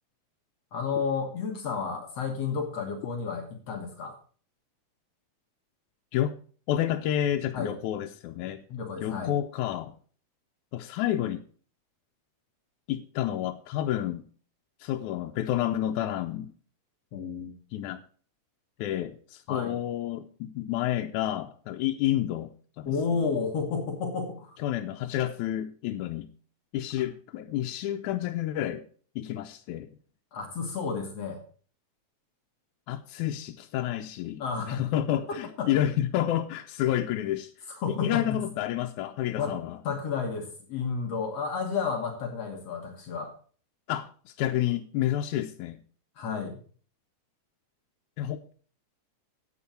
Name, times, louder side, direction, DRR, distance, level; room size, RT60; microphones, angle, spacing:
voice 1, 0.7-4.2 7.5-7.7 8.7-9.4 17.1-17.6 19.5-19.8 22.8-24.6 30.3-31.4 34.4-34.9 35.3-35.7 37.8-38.4 39.3-39.6 39.8-43.3 46.2-46.6, left 5 dB, 60° left, 2.5 m, -31 dB
voice 2, 6.7-8.6 9.0-9.9 10.7-11.4 12.9-14.3 14.8-16.5 17.7-18.0 18.8-23.2 24.6-26.3 26.7-28.8 29.2-29.9 32.9-34.4 34.7-37.5 37.9-39.8 43.9-45.8 48.2-48.5, left 12 dB, 90° left, 2.1 m, -30 dB
11.0 x 8.7 x 4.3 m
omnidirectional pair, 3.4 m